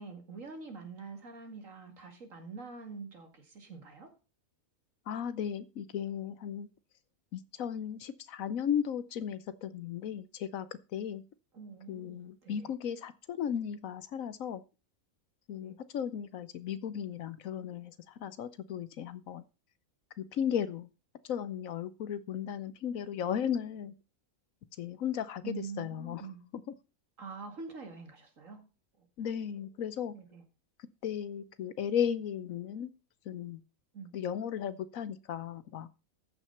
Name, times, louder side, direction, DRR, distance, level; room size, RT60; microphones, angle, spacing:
voice 1, 0.0-4.1 11.5-12.7 15.6-15.7 25.4-26.4 27.2-28.6 29.0-29.1 30.1-30.4 33.9-34.1, right 4 dB, 60° right, 2.6 m, -45 dB
voice 2, 5.1-6.7 7.3-10.7 10.9-11.2 11.9-14.6 15.5-19.4 20.2-20.9 21.2-23.9 24.8-26.2 29.2-30.1 31.0-32.9 33.3-33.6 34.1-35.9, left 8 dB, 70° left, 1.1 m, -35 dB
13.5 x 6.1 x 5.6 m
omnidirectional pair, 1.5 m